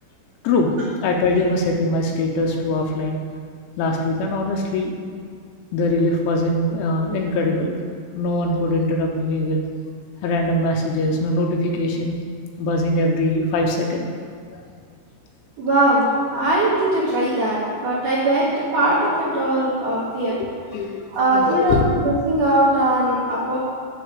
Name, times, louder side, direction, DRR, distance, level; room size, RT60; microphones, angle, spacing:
voice 1, 0.4-0.8 1.0-3.2 3.8-4.9 5.7-7.8 8.2-9.6 10.2-12.2 12.6-14.1 14.5-14.6 16.4-16.5 20.7-21.9, left 2 dB, 80° left, 1 dB, 2.9 m, -22 dB
voice 2, 15.6-16.0 16.3-20.4 21.1-23.6, right 1 dB, 55° right, -8 dB, 2.6 m, -20 dB
10.5 x 3.9 x 7.5 m, 2.1 s
omnidirectional pair, 5.8 m